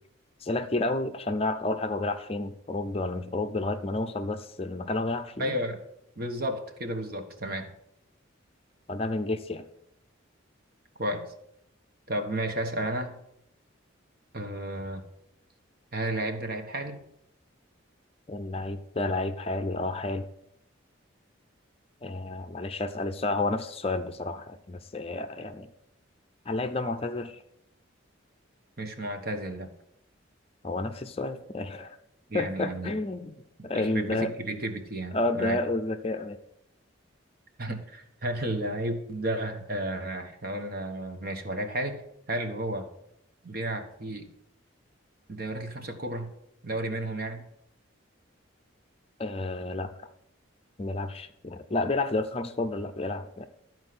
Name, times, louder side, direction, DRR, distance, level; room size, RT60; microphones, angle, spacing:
voice 1, 0.4-5.6 8.9-9.7 18.3-20.3 22.0-25.7 26.5-27.4 30.6-32.0 32.3-33.3 33.6-34.3 35.1-36.4 49.2-49.9 50.8-53.5, left 2 dB, 30° left, 8 dB, 0.6 m, -30 dB
voice 2, 5.4-5.8 6.2-7.7 11.0-11.2 12.1-13.1 14.3-15.0 15.9-17.0 28.8-29.7 32.3-33.0 33.7-35.6 37.6-42.0 42.3-42.9 43.4-44.3 45.3-46.3 46.6-47.4, right 1 dB, 45° right, 6 dB, 1.3 m, -32 dB
13.0 x 4.6 x 7.8 m, 0.77 s
head